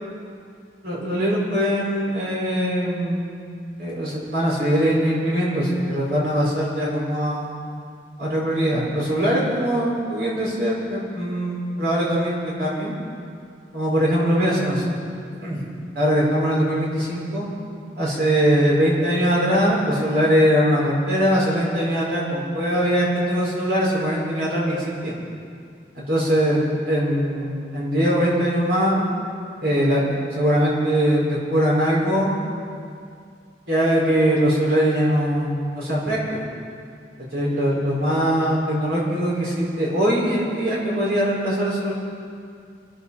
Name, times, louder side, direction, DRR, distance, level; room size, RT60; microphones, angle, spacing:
voice 1, 0.8-3.2 3.8-7.5 8.2-12.3 12.6-12.9 13.7-14.8 15.4-15.7 15.9-17.5 18.0-24.8 25.0-25.1 26.1-26.6 26.9-29.0 29.6-32.3 33.7-36.5 37.3-41.9, equal, 60° right, -5 dB, 5.3 m, -21 dB
25.5 x 13.0 x 4.3 m, 2.3 s
head